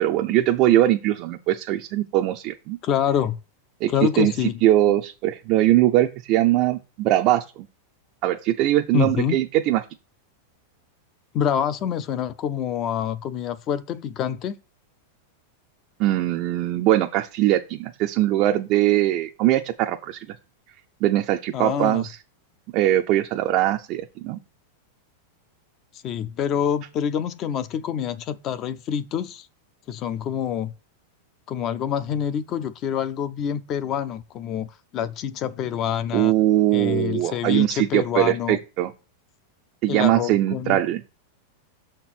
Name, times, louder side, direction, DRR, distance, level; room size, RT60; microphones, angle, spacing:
voice 1, 0.0-2.8 3.8-4.3 4.6-7.4 8.2-9.8 16.0-20.3 21.0-22.2 22.7-24.4 36.1-38.9 39.8-41.0, right 14 dB, 40° right, 0.5 m, -21 dB
voice 2, 2.8-3.4 3.9-4.6 8.9-9.4 11.3-14.6 21.5-22.0 26.0-29.5 29.9-30.7 31.5-34.7 34.9-36.3 36.7-38.6 39.9-40.8, left 9 dB, 30° left, 0.5 m, -26 dB
6.5 x 4.3 x 6.0 m
supercardioid pair, 160°, 0 cm